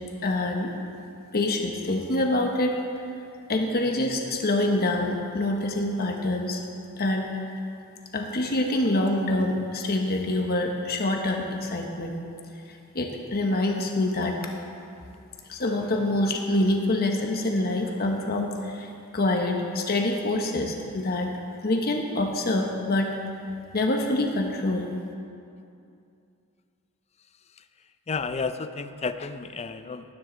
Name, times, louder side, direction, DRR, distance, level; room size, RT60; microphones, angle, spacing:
voice 1, 0.2-0.7 1.3-2.8 3.5-6.6 7.0-7.3 8.1-12.2 12.7-14.5 15.5-21.3 21.6-23.1 23.7-24.9, left 1 dB, 45° left, 2 dB, 1.1 m, -26 dB
voice 2, 28.1-30.1, left 4 dB, 30° left, 10 dB, 0.5 m, -32 dB
18.5 x 10.0 x 3.9 m, 2.5 s
head